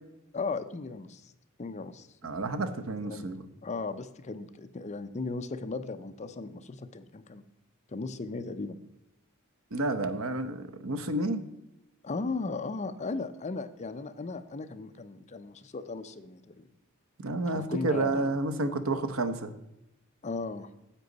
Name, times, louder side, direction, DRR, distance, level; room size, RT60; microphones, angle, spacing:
voice 1, 0.3-1.3 1.6-2.1 3.0-3.3 3.6-7.4 7.9-8.8 12.0-16.7 17.4-18.3 20.2-20.7, left 3 dB, 30° left, 11 dB, 0.5 m, -36 dB
voice 2, 2.2-3.4 9.7-11.4 17.2-19.5, right 2 dB, 70° right, 9 dB, 0.8 m, -30 dB
10.0 x 7.8 x 4.0 m, 0.91 s
head